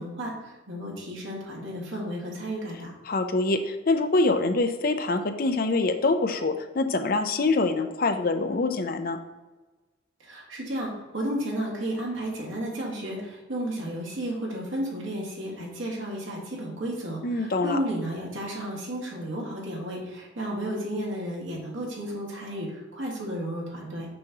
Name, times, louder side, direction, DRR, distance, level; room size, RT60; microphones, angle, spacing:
voice 1, 0.0-2.9 10.2-24.1, right 1 dB, 90° right, -3 dB, 1.9 m, -33 dB
voice 2, 3.1-9.2 17.2-17.8, left 3 dB, 45° left, 7 dB, 0.5 m, -25 dB
6.2 x 3.0 x 5.8 m, 1.2 s
head